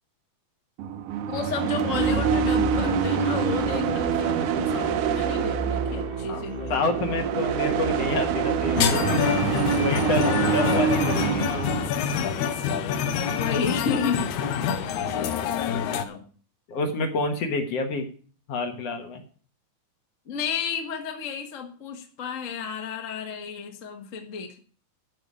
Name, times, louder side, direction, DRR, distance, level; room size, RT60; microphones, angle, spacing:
sound 1, 0.8-11.9, right 8 dB, 75° right, 2.4 m, -26 dB
voice 1, 1.3-6.8 13.3-14.3 14.9-16.3 20.3-24.6, left 6 dB, 40° left, 4 dB, 1.2 m, -32 dB
sound 2, 1.9-11.9, equal, 20° right, 1.0 m, -34 dB
voice 2, 6.7-9.3 9.8-11.7 15.2-15.3 16.7-18.1 18.5-19.2, left 2 dB, 55° left, 5 dB, 2.2 m, -28 dB
sound 3, 8.8-16.0, left 7 dB, 75° left, 2.2 m, -26 dB
12.5 x 4.9 x 8.3 m, 0.42 s
omnidirectional pair, 3.8 m